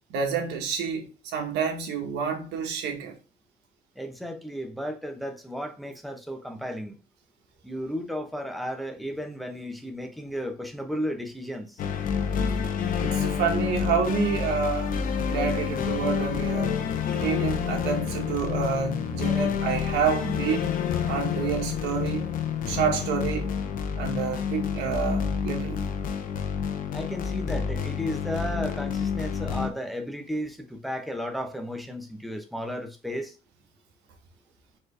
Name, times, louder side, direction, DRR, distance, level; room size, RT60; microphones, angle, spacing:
voice 1, 0.1-3.1 13.0-16.8 17.1-20.7 21.1-22.3 22.7-23.5 24.0-25.8, right 6 dB, 85° right, 1.3 m, -28 dB
voice 2, 4.0-7.0 7.6-11.8 26.9-33.4, equal, ahead, 0.9 m, -34 dB
sound 1, 11.8-29.7, left 7 dB, 55° left, 0.8 m, -28 dB
4.4 x 3.2 x 3.3 m
cardioid pair, 110°, 17 cm